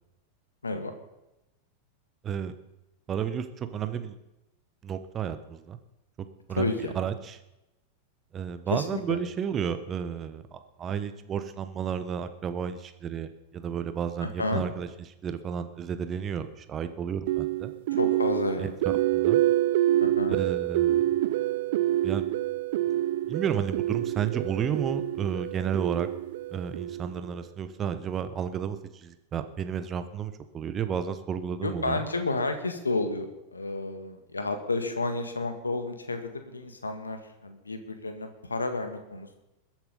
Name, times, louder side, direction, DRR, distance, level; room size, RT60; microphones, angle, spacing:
voice 1, 3.1-4.1 4.8-5.8 6.5-7.1 8.3-14.9 15.2-17.7 18.6-18.7 19.1-19.4 20.3-21.0 22.0-22.2 23.3-26.1 26.5-32.0, right 7 dB, 25° right, 10 dB, 1.2 m, -32 dB
voice 2, 6.5-6.9 8.7-9.2 14.2-14.6 17.9-18.8 20.0-20.4 31.6-39.4, left 3 dB, 75° left, 7 dB, 1.8 m, -31 dB
sound 1, 17.3-27.4, right 14 dB, 55° right, 0.4 m, -27 dB
21.0 x 8.0 x 5.5 m, 0.94 s
figure-of-eight pair, 90°, 0 cm